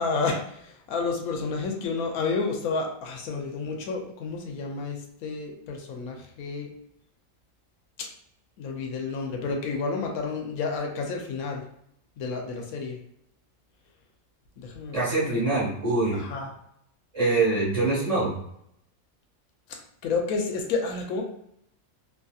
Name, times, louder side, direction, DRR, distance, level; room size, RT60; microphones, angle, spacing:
voice 1, 0.0-6.7 8.0-8.1 8.6-11.6 12.2-13.0 14.6-15.0 15.3-15.4 16.1-16.5 19.7-21.2, left 4 dB, 80° left, 1 dB, 1.1 m, -30 dB
voice 2, 14.9-16.2 17.1-18.4, right 3 dB, 25° right, -7 dB, 1.2 m, -24 dB
2.8 x 2.7 x 2.3 m, 0.73 s
omnidirectional pair, 1.5 m